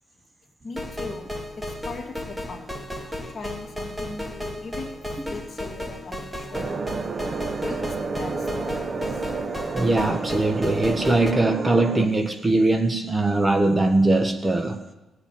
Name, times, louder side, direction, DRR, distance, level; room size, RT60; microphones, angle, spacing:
voice 1, 0.6-1.3 1.6-2.7 3.3-5.0 5.3-6.9 7.6-9.2, left 3 dB, 40° left, 2.2 m, -39 dB
sound 1, 0.8-11.3, left 1 dB, 5° right, 1.8 m, -34 dB
sound 2, 6.5-12.1, right 4 dB, 35° right, 0.9 m, -30 dB
voice 2, 9.7-14.8, right 2 dB, 20° right, 1.2 m, -21 dB
17.0 x 6.7 x 9.0 m
cardioid pair, 90°, 0 cm